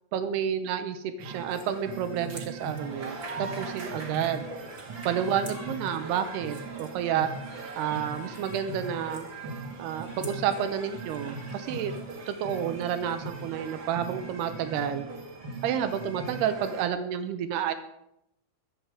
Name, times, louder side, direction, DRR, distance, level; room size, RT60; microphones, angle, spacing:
voice 1, 0.1-4.5 5.1-7.3 7.8-9.3 9.8-11.9 12.3-15.0 15.6-17.7, right 8 dB, 85° right, 9 dB, 2.3 m, -30 dB
sound 1, 1.2-16.9, right 3 dB, 65° right, 1.1 m, -39 dB
sound 2, 1.5-13.5, right 2 dB, 40° right, 1.3 m, -54 dB
23.0 x 8.1 x 4.9 m, 0.81 s
omnidirectional pair, 5.7 m